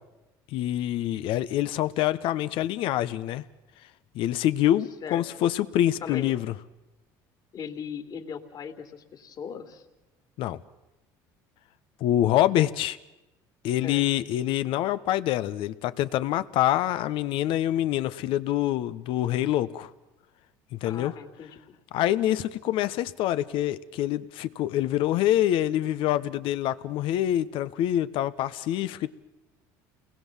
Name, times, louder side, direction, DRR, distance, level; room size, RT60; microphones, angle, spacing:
voice 1, 0.5-3.4 4.1-6.5 10.4-10.6 12.0-13.0 13.6-19.9 20.7-21.1 21.9-29.1, left 13 dB, 65° left, 1.2 m, -26 dB
voice 2, 6.0-6.3 7.5-9.8 13.8-14.0 20.8-21.8, left 7 dB, 45° left, 3.2 m, -38 dB
29.5 x 21.0 x 7.4 m
supercardioid pair, 95°, 9 cm